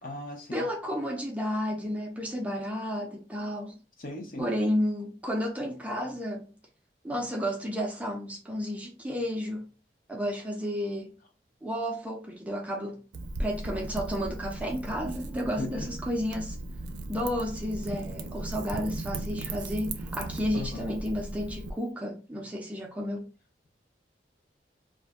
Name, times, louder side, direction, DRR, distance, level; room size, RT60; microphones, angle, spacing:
voice 1, 0.0-0.7 4.0-4.5 15.6-15.9 20.5-20.9, left 2 dB, 50° left, 0.7 m, -37 dB
voice 2, 0.5-3.8 4.4-6.5 7.0-9.6 10.1-11.1 11.6-13.0 13.4-16.6 17.1-23.3, equal, 10° right, 0.4 m, -32 dB
Wind / Fire, 13.1-21.7, right 2 dB, 85° right, 0.5 m, -37 dB
2.4 x 2.1 x 3.4 m
head